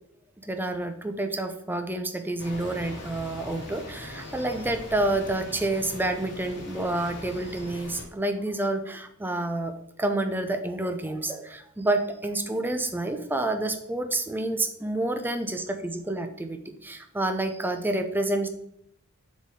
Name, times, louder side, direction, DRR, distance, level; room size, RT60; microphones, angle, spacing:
voice 1, 0.4-9.7 10.0-18.5, right 2 dB, 10° right, 7 dB, 0.5 m, -29 dB
sound 1, 2.4-8.0, left 1 dB, 55° left, 1.4 m, -41 dB
7.0 x 4.1 x 3.7 m, 0.76 s
head